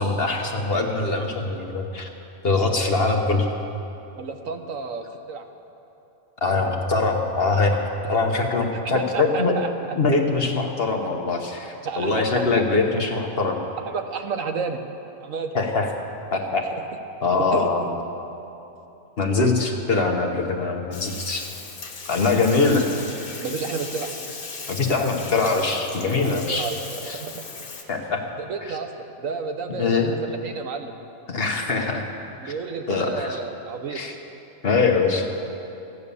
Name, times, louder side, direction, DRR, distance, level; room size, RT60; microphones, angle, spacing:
voice 1, 0.0-2.1 2.4-3.5 6.4-7.8 8.1-9.6 10.0-13.6 15.5-15.9 16.3-16.7 17.2-17.9 19.2-21.4 22.1-22.9 24.7-26.7 27.0-27.2 27.9-28.2 29.8-30.1 31.3-32.1 32.4-32.5 32.9-33.4 33.9-34.1 34.6-35.3, left 3 dB, 45° left, 2 dB, 1.2 m, -22 dB
voice 2, 4.1-5.5 8.1-8.2 8.9-10.0 11.8-12.8 13.9-14.8 15.2-15.5 16.7-16.8 17.5-17.9 22.6-22.8 23.4-24.1 26.2-27.4 28.4-28.9 29.2-30.9 32.4-34.0, right 5 dB, 70° right, 6 dB, 1.2 m, -31 dB
Bathtub (filling or washing), 20.9-27.8, left 4 dB, 80° left, 1.9 m, -37 dB
15.0 x 9.8 x 6.9 m, 2.9 s
omnidirectional pair, 1.5 m